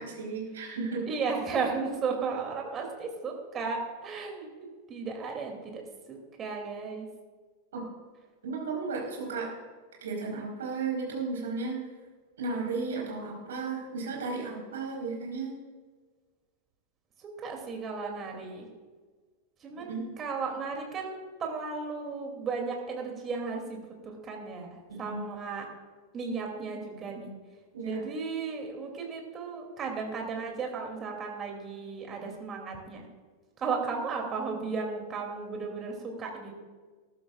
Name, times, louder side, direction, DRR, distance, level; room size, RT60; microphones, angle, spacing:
voice 1, 0.0-1.1 7.7-7.8 8.4-9.5 10.0-11.8 12.4-15.5 19.9-20.1 24.9-25.2 27.7-28.0, right 4 dB, 65° right, -1 dB, 4.3 m, -34 dB
voice 2, 1.1-4.5 4.9-5.8 6.1-7.1 17.2-18.7 19.6-25.7 26.1-27.3 27.8-33.1 33.6-36.6, right 4 dB, 25° right, 1 dB, 2.8 m, -35 dB
20.5 x 12.5 x 2.5 m, 1.4 s
figure-of-eight pair, 90°, 0 cm